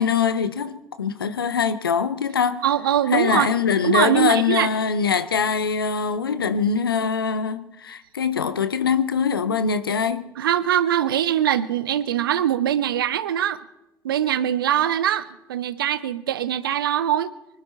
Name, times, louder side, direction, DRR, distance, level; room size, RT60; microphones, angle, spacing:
voice 1, 0.0-2.6 3.1-10.2, left 6 dB, 85° left, 0.7 m, -23 dB
voice 2, 2.6-3.5 3.8-4.7 10.4-13.6 14.0-17.3, right 10 dB, 75° right, 0.6 m, -22 dB
25.0 x 11.5 x 4.4 m
figure-of-eight pair, 50°, 12 cm